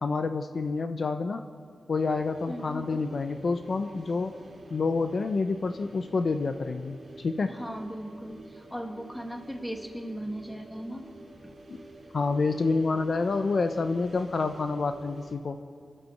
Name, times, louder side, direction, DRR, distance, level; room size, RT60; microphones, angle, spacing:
voice 1, 0.0-1.4 1.9-4.3 4.7-7.5 11.7-11.9 12.1-15.6, left 4 dB, 50° left, 8 dB, 0.8 m, -28 dB
sound 1, 2.0-15.3, right 2 dB, 35° right, 4.4 m, -49 dB
voice 2, 2.5-3.0 7.5-11.1 11.4-11.5, equal, 5° left, 4 dB, 1.9 m, -38 dB
27.5 x 12.5 x 7.8 m, 2.1 s
wide cardioid pair, 125°, 0 cm